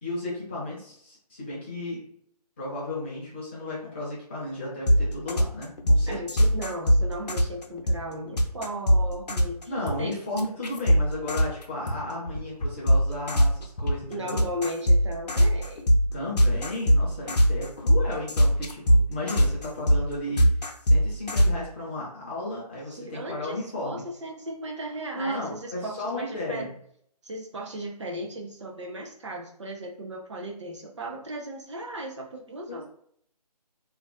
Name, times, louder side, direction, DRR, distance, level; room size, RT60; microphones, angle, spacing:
voice 1, 0.0-2.0 2.6-6.2 9.7-14.4 16.1-20.5 20.8-24.0 25.1-26.7 32.7-32.8, left 1 dB, 15° left, -6 dB, 0.5 m, -34 dB
sound 1, 4.9-11.9 12.3-21.5, equal, 80° left, 0.5 m, -21 dB
voice 2, 6.1-9.6 10.0-10.2 14.1-15.9 22.9-26.7 27.2-32.8, right 1 dB, 45° right, 0 dB, 0.4 m, -36 dB
2.3 x 2.3 x 2.2 m, 0.67 s
figure-of-eight pair, 155°, 21 cm